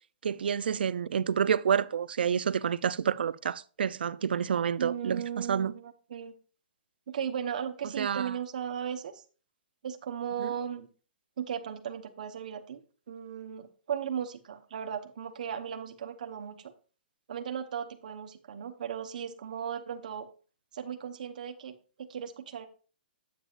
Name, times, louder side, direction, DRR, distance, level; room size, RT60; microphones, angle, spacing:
voice 1, 0.2-5.7 8.0-8.3 10.4-10.5, right 7 dB, 75° right, 0.4 m, -29 dB
voice 2, 4.8-6.3 7.1-9.2 9.8-10.9 11.4-12.8 13.1-16.7 17.3-20.3 20.7-22.7, right 8 dB, 50° right, 0.9 m, -36 dB
8.4 x 8.4 x 2.4 m
hypercardioid pair, 170°, 5 cm